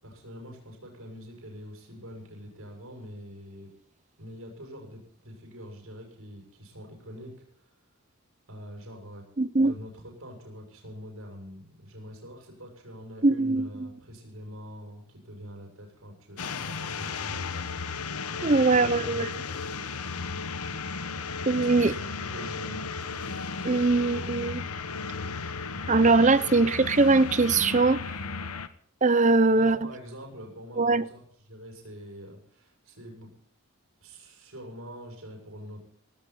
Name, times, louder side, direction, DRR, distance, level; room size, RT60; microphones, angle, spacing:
voice 1, 0.0-3.7 4.2-7.3 7.6-7.7 8.5-9.2 9.6-17.6 17.9-19.6 20.0-20.2 21.5-23.2 29.4-33.3 34.0-35.8, equal, 70° right, 7.0 m, -45 dB
voice 2, 9.4-9.7 13.2-13.7 18.4-19.3 21.5-21.9 23.6-24.6 25.9-28.0 29.0-29.8 30.8-31.0, right 3 dB, 35° right, 0.6 m, -21 dB
sound 1, 16.4-28.7, left 4 dB, 90° left, 1.3 m, -34 dB
17.5 x 17.5 x 4.2 m
head